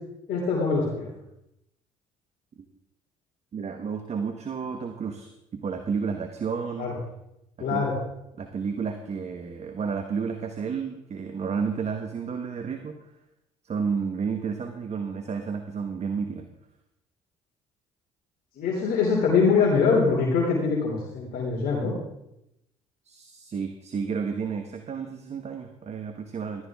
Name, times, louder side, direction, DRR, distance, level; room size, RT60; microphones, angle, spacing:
voice 1, 0.3-1.1 6.8-6.9 7.6-8.0 18.6-21.9, left 5 dB, 70° left, -3 dB, 3.1 m, -23 dB
voice 2, 3.5-6.9 7.6-7.9 8.4-13.1 13.6-16.5 23.0-26.7, right 6 dB, 45° right, 7 dB, 1.3 m, -31 dB
14.5 x 12.5 x 3.6 m, 0.85 s
supercardioid pair, 65°, 16 cm